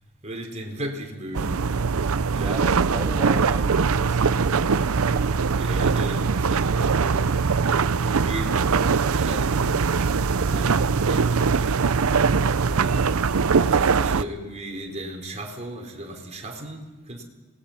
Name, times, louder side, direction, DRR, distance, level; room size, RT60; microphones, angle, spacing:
voice 1, 0.2-1.9 2.3-3.0 5.5-7.4 7.7-9.9 10.3-12.0 12.6-17.2, right 1 dB, 30° right, 4.0 m, -36 dB
sound 1, 1.3-14.2, right 5 dB, 70° right, 0.6 m, -22 dB
voice 2, 2.4-5.0, right 1 dB, 15° right, 0.9 m, -35 dB
27.0 x 20.5 x 5.9 m
head